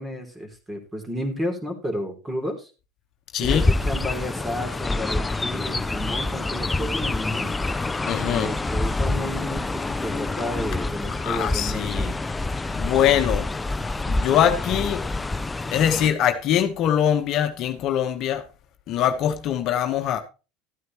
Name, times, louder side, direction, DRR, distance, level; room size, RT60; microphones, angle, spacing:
voice 1, 0.0-2.7 3.4-7.5 8.2-12.1, equal, 15° right, 3.2 m, -32 dB
voice 2, 3.3-3.7 8.1-8.5 11.2-12.1 12.7-13.5 14.1-15.0 15.7-18.4 18.9-20.2, left 10 dB, 55° left, 1.1 m, -23 dB
Chirp tweet, 3.4-16.1, left 2 dB, 15° left, 0.6 m, -27 dB
13.0 x 9.4 x 3.1 m
hypercardioid pair, 85°, 0 cm